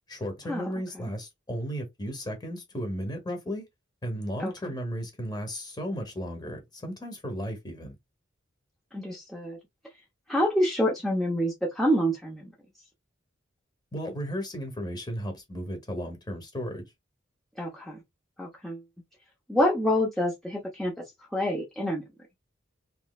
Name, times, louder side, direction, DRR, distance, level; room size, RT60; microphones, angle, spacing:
voice 1, 0.1-3.6 4.0-7.9 13.9-16.8, equal, 20° left, 1.0 m, -34 dB
voice 2, 8.9-9.6 10.3-12.5 17.6-18.0 18.4-18.8 19.5-21.0 21.3-22.0, equal, ahead, 0.7 m, -27 dB
3.1 x 3.0 x 2.3 m
head